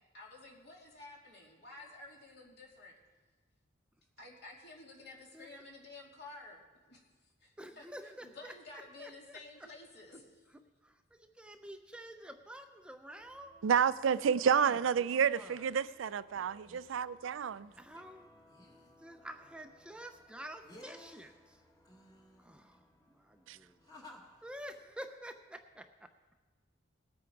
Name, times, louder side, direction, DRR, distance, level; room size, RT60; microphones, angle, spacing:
voice 1, 0.1-2.9 4.2-6.6 6.9-7.0 7.4-7.9 8.2-10.4, left 2 dB, 60° left, 2.7 m, -52 dB
voice 2, 7.6-8.5 9.0-9.7 10.5-13.5 14.5-15.7 17.7-18.3 19.0-21.6 22.4-22.8 23.1-23.8 24.4-26.1, right 1 dB, 5° right, 0.5 m, -49 dB
sound 1, 13.1-24.9, left 1 dB, 20° left, 1.5 m, -60 dB
voice 3, 13.6-17.7 23.5-23.6, right 7 dB, 85° right, 0.4 m, -30 dB
20.0 x 8.6 x 4.6 m
head